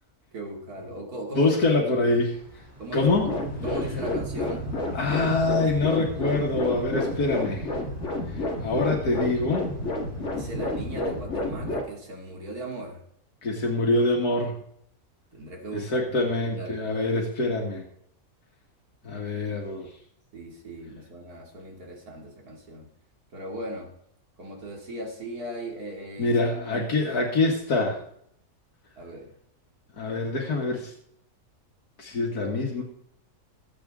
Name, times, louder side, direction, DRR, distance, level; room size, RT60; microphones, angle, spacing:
voice 1, 0.3-2.1 2.8-3.3 3.6-4.7 10.3-13.0 15.3-16.9 20.3-22.9 23.3-23.9 24.4-26.4 26.7-26.9 29.0-29.3, right 1 dB, 75° right, 1 dB, 3.3 m, -38 dB
voice 2, 1.4-2.4 2.9-3.3 4.9-7.7 8.3-9.7 13.4-14.6 15.7-17.8 19.0-19.9 26.2-28.0 30.0-30.9 32.0-32.8, left 2 dB, 85° left, 0 dB, 2.3 m, -25 dB
sound 1, 2.3-11.2, right 2 dB, 10° right, 4.2 m, -45 dB
sound 2, 3.0-11.8, left 2 dB, 50° left, 2.4 m, -30 dB
21.5 x 8.1 x 3.7 m, 0.69 s
omnidirectional pair, 1.6 m